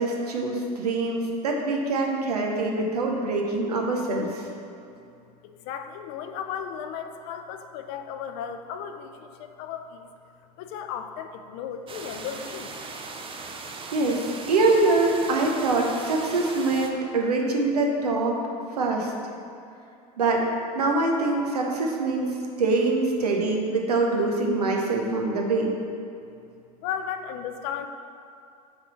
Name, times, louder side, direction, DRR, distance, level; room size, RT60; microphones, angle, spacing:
voice 1, 0.0-4.5 13.9-18.4 18.8-19.1 20.2-20.5 20.7-25.7, right 3 dB, 85° right, 1 dB, 0.8 m, -24 dB
voice 2, 5.4-10.1 10.6-12.7 26.8-27.9, left 8 dB, 60° left, 7 dB, 0.5 m, -35 dB
sound 1, 11.9-16.9, right 4 dB, 25° right, 0.6 m, -38 dB
5.8 x 3.5 x 5.4 m, 2.6 s
hypercardioid pair, 80°, 19 cm